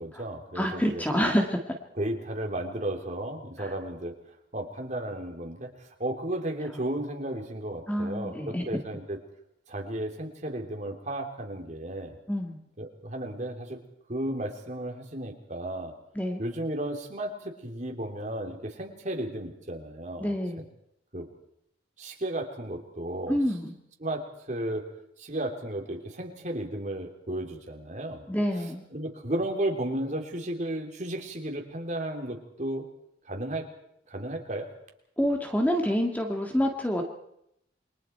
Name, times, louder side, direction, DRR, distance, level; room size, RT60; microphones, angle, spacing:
voice 1, 0.0-1.0 2.0-4.1 4.5-5.7 6.0-9.2 9.7-12.2 12.8-13.8 14.1-15.9 16.4-20.3 21.1-21.3 22.0-23.4 24.0-24.9 25.2-28.2 28.6-28.7 28.9-32.8 33.2-33.6 34.1-34.7, right 1 dB, 40° right, 2 dB, 3.3 m, -34 dB
voice 2, 0.6-1.6 3.6-3.7 7.9-8.7 12.3-12.6 16.2-16.4 20.2-20.6 23.3-23.7 28.3-28.8 35.2-37.0, equal, 10° left, 2 dB, 1.8 m, -27 dB
28.5 x 23.0 x 4.6 m, 0.78 s
head